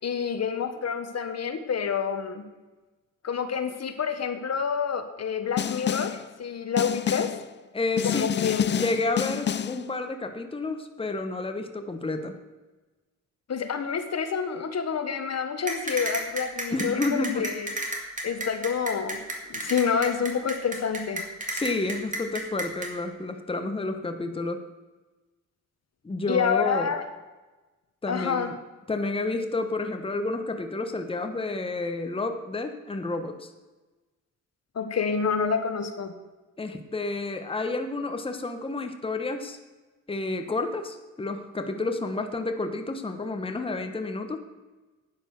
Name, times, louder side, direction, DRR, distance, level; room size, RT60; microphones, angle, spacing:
voice 1, 0.0-2.4 3.2-7.3 8.0-8.7 13.5-17.7 18.2-19.2 19.5-21.3 26.3-27.0 28.1-28.5 34.7-36.2, left 6 dB, 50° left, 8 dB, 1.3 m, -28 dB
Snare drum, 5.6-6.2 6.8-7.4 8.0-9.8, left 9 dB, 35° left, 0.4 m, -28 dB
voice 2, 7.7-8.3 8.7-12.4 16.7-17.5 21.5-24.6 26.0-26.9 28.0-28.5 28.9-33.5 36.6-39.6 40.1-44.4, left 3 dB, 15° left, 6 dB, 1.2 m, -30 dB
sound 1, 15.7-22.9, right 1 dB, 25° right, 2.5 m, -31 dB
11.5 x 9.2 x 6.5 m, 1.2 s
cardioid pair, 100°, 33 cm